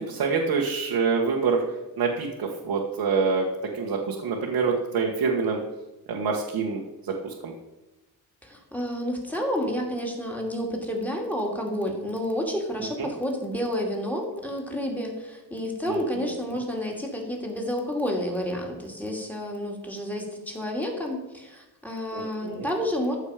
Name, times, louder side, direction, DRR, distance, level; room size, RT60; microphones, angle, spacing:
voice 1, 0.0-1.6 2.0-3.5 3.7-5.6 6.1-6.8 7.2-7.5 13.0-13.1 15.9-16.4 22.1-22.7, right 5 dB, 75° right, -1 dB, 1.7 m, -26 dB
voice 2, 8.4-23.2, equal, 5° left, 0 dB, 2.7 m, -30 dB
14.5 x 6.7 x 5.1 m, 1.0 s
wide cardioid pair, 135°, 40 cm